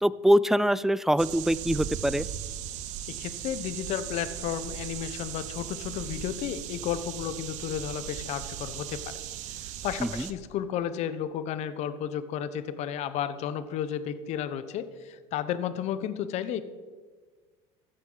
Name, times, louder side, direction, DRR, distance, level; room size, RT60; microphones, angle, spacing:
voice 1, 0.0-2.3 10.0-10.3, equal, 5° right, 18 dB, 0.3 m, -24 dB
sound 1, 1.2-10.3, right 11 dB, 60° right, 0.9 m, -38 dB
voice 2, 3.2-9.1 9.6-16.6, left 9 dB, 55° left, 12 dB, 1.0 m, -33 dB
14.5 x 8.2 x 5.6 m, 1.5 s
supercardioid pair, 125°, 14 cm